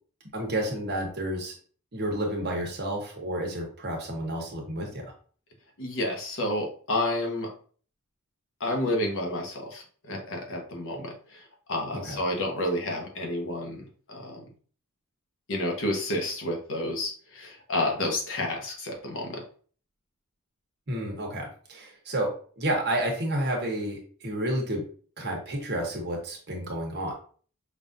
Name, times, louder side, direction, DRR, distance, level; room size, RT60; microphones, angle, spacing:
voice 1, 0.3-1.5 1.9-5.0 11.9-12.2 20.9-24.8 25.2-27.1, right 1 dB, 50° right, 0 dB, 1.2 m, -30 dB
voice 2, 5.8-7.5 8.6-11.4 11.7-14.4 15.5-19.4, left 1 dB, 65° left, 1 dB, 1.0 m, -30 dB
5.3 x 2.6 x 2.6 m, 0.43 s
head